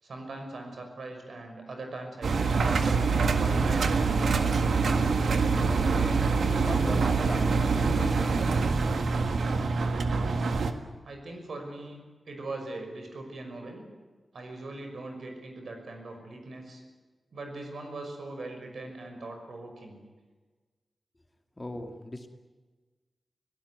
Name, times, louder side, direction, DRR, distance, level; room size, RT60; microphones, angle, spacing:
voice 1, 0.0-3.1 3.3-4.2 11.0-12.0 12.3-13.8 14.3-16.8 17.3-20.0, right 2 dB, 75° right, 4 dB, 5.9 m, -40 dB
Engine, 2.2-10.7, right 4 dB, 90° right, 1.7 m, -25 dB
voice 2, 5.2-6.3 6.6-8.4 21.6-22.3, left 1 dB, 20° left, 4 dB, 2.3 m, -39 dB
25.0 x 17.5 x 9.6 m, 1.3 s
wide cardioid pair, 120°, 0 cm